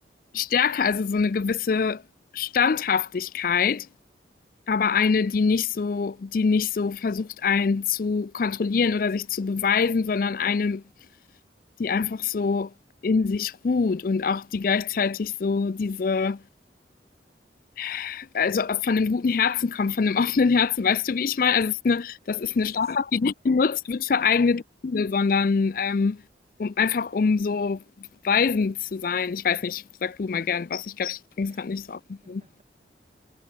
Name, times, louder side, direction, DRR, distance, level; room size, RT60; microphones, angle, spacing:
voice 1, 0.3-2.0 2.3-3.9 4.7-10.8 11.8-12.7 13.0-16.4 17.8-26.2 26.6-32.4, left 5 dB, 50° left, 0.4 m, -24 dB
voice 2, 22.2-23.0 24.1-24.5 31.5-31.8 32.2-32.6, right 2 dB, 35° right, 6.0 m, -56 dB
head